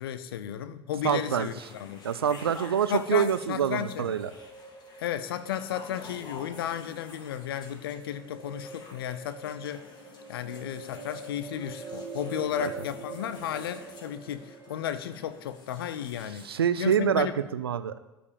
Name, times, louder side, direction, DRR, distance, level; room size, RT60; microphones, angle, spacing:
voice 1, 0.0-2.0 2.9-4.1 5.0-9.9 10.3-17.3, left 10 dB, 70° left, 12 dB, 0.6 m, -34 dB
sound 1, 1.0-16.5, left 3 dB, 35° left, 2.9 m, -50 dB
voice 2, 1.0-1.5 2.0-4.3 12.6-12.7 16.4-18.0, right 8 dB, 80° right, 14 dB, 0.4 m, -26 dB
sound 2, 3.4-14.8, right 3 dB, 25° right, 2.0 m, -45 dB
13.0 x 5.1 x 8.4 m, 1.0 s
figure-of-eight pair, 65°, 13 cm